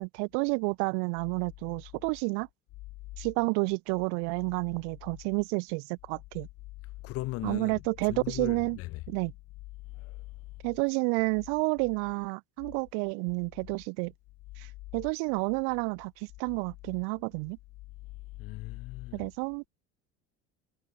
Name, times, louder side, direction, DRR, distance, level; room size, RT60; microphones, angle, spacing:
voice 1, 0.0-2.5 3.2-6.5 7.4-8.8 9.1-9.3 10.6-14.1 14.6-14.7 14.9-16.1 16.4-17.6 19.1-19.7, right 40 dB or more, 85° right, 0.7 m, -30 dB
voice 2, 7.0-9.1 10.0-10.2 18.4-19.3, left 19 dB, 55° left, 0.6 m, -38 dB
cardioid pair, 140°, 29 cm